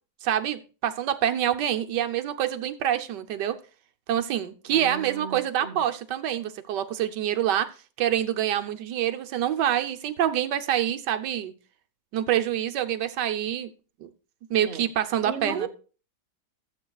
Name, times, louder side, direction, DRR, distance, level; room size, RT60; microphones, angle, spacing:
voice 1, 0.2-3.6 4.1-7.7 8.0-11.5 12.1-13.7 14.0-14.1 14.5-15.7, right 10 dB, 80° right, 8 dB, 1.4 m, -26 dB
voice 2, 4.7-5.8 14.6-14.9 15.2-15.7, right 6 dB, 30° right, 3 dB, 1.3 m, -35 dB
15.5 x 8.0 x 2.3 m, 0.37 s
omnidirectional pair, 1.8 m